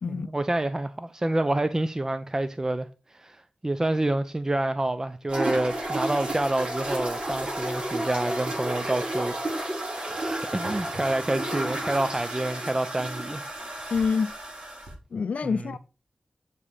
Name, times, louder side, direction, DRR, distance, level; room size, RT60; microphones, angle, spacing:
voice 1, 0.1-9.8 10.0-13.5 15.4-15.6, right 1 dB, 25° right, 0.6 m, -28 dB
sound 1, 5.3-14.9, right 1 dB, 45° right, 5.8 m, -32 dB
voice 2, 13.9-14.3 15.1-15.8, left 5 dB, 75° left, 0.5 m, -26 dB
8.3 x 5.0 x 5.5 m
cardioid pair, 65°, 2 cm